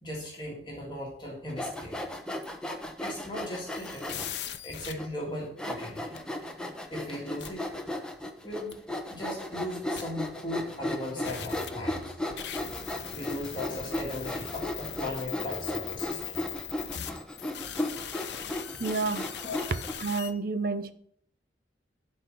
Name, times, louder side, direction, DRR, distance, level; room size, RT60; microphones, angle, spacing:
voice 1, 0.0-2.0 3.0-4.3 4.6-6.2 6.9-7.7 8.4-12.1 13.1-16.5 16.9-17.0 19.4-19.6, left 1 dB, 25° left, 1.9 m, -37 dB
Sawing, 1.5-4.4 5.0-5.1 5.6-19.9, left 1 dB, 5° left, 1.0 m, -35 dB
sound 1, 3.7-4.9 6.2-6.3 7.4-7.5 8.7-8.8 10.0-10.1 11.2-20.3, left 10 dB, 70° left, 0.7 m, -40 dB
voice 2, 18.8-19.3 20.0-20.9, right 4 dB, 60° right, 0.7 m, -30 dB
11.5 x 4.3 x 6.0 m
head